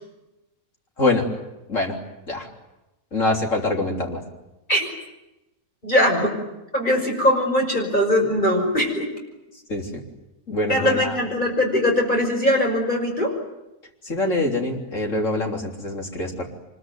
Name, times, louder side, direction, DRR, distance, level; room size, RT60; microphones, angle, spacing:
voice 1, 1.0-1.3 1.7-2.0 2.3-2.5 3.1-4.2 9.7-10.0 10.5-11.2 14.0-16.5, left 2 dB, 60° left, 2 dB, 3.9 m, -24 dB
voice 2, 5.8-6.3 6.7-9.1 10.7-13.3, left 1 dB, 30° left, 1 dB, 5.9 m, -21 dB
25.0 x 21.5 x 9.4 m, 0.95 s
omnidirectional pair, 1.5 m